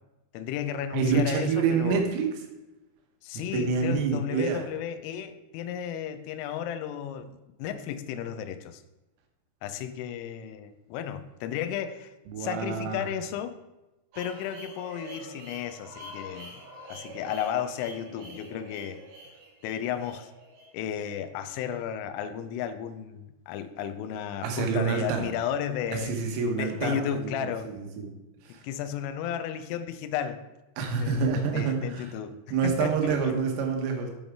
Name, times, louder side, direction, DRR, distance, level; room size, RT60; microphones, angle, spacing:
voice 1, 0.3-2.0 3.2-8.8 9.6-12.1 12.4-13.6 14.2-16.6 16.9-19.0 19.6-20.3 20.7-26.1 26.6-27.7 28.6-30.4 31.0-33.3, left 9 dB, 85° left, 9 dB, 3.2 m, -33 dB
voice 2, 0.9-2.3 3.4-4.6 12.3-13.0 24.4-25.3 25.9-27.5 27.8-28.1 28.5-28.6 30.8-32.1 32.5-34.1, right 5 dB, 90° right, 2 dB, 3.8 m, -27 dB
sound 1, 14.1-22.0, right 1 dB, 65° right, 2.5 m, -46 dB
8.7 x 7.9 x 3.5 m, 1.0 s
omnidirectional pair, 5.7 m